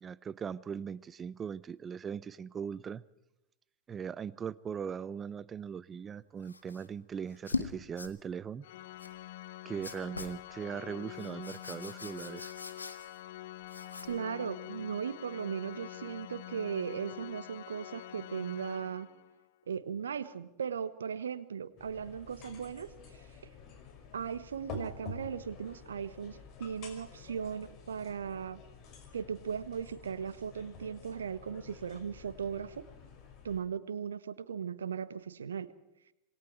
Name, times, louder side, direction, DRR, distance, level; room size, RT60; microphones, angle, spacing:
voice 1, 0.0-3.0 3.9-8.6 9.6-12.5, right 7 dB, 20° right, 20 dB, 0.7 m, -39 dB
sound 1, 6.4-6.9 7.3-7.7 8.0-8.1 9.0-9.1 9.8-10.4 11.1-13.3 13.6-14.2, left 3 dB, 80° left, 1.7 m, -40 dB
Organ, 8.6-19.4, left 14 dB, 55° left, 1.0 m, -46 dB
voice 2, 14.1-19.1 19.7-23.2 24.1-28.6 29.1-32.8 33.4-35.7, right 7 dB, 70° right, 15 dB, 1.3 m, -37 dB
sound 2, 21.8-33.6, left 4 dB, 35° left, 5.6 m, -50 dB
27.5 x 21.0 x 4.7 m, 0.90 s
figure-of-eight pair, 90°, 0 cm